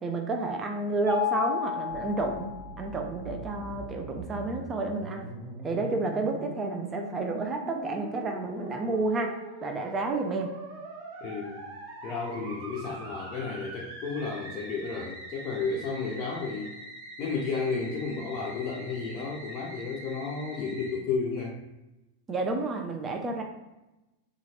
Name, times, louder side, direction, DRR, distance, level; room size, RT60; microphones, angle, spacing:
voice 1, 0.0-5.3 5.6-10.6 22.3-23.4, right 2 dB, 20° right, 2 dB, 0.4 m, -30 dB
Mallet percussion, 1.1-3.0, left 8 dB, 85° left, 0.6 m, -32 dB
Musical instrument, 1.9-21.0, right 2 dB, 55° right, 0.9 m, -43 dB
voice 2, 11.2-11.6 12.0-16.8 17.2-21.6, left 4 dB, 35° left, -3 dB, 0.5 m, -32 dB
2.7 x 2.4 x 2.9 m, 1.0 s
figure-of-eight pair, 90°, 0 cm